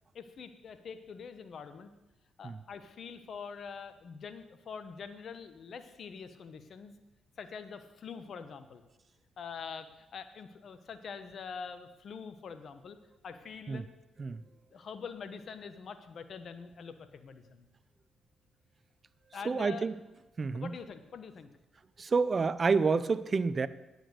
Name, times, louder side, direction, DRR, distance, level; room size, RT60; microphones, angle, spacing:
voice 1, 0.1-1.9 2.4-6.9 7.4-8.8 9.4-13.0 13.2-13.9 14.7-17.7 19.3-19.9 20.5-21.5, left 6 dB, 60° left, 10 dB, 1.1 m, -44 dB
voice 2, 19.4-19.9 20.4-20.7 22.0-23.7, right 4 dB, 45° right, 15 dB, 0.6 m, -28 dB
10.0 x 7.9 x 6.6 m, 1.0 s
hypercardioid pair, 50°, 0 cm